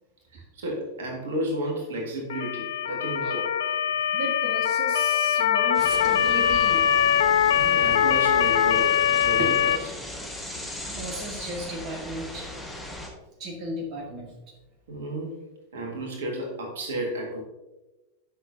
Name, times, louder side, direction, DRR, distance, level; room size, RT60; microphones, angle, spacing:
voice 1, 0.3-3.5 7.4-10.0 14.9-15.4 15.7-17.4, right 1 dB, 60° right, 0 dB, 1.8 m, -32 dB
Motor vehicle (road) / Siren, 2.3-9.8, left 9 dB, 60° left, 0.3 m, -22 dB
voice 2, 4.1-6.9 7.4-7.5 9.4-9.5 10.3-12.5 13.4-14.3, right 1 dB, 35° right, -1 dB, 1.7 m, -35 dB
sound 1, 5.7-13.1, left 1 dB, 5° left, 1.4 m, -38 dB
10.5 x 6.1 x 2.7 m, 1.1 s
figure-of-eight pair, 90°, 0 cm